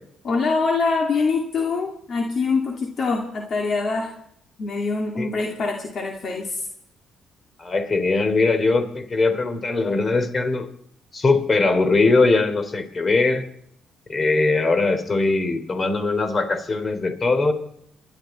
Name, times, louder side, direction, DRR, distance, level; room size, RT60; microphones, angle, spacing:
voice 1, 0.2-4.1 4.6-6.6, left 4 dB, 50° left, 1 dB, 2.3 m, -24 dB
voice 2, 7.6-10.7 11.1-13.4 14.1-17.5, left 3 dB, 35° left, 8 dB, 3.1 m, -21 dB
27.5 x 12.0 x 4.3 m, 0.71 s
cardioid pair, 90°, 0 cm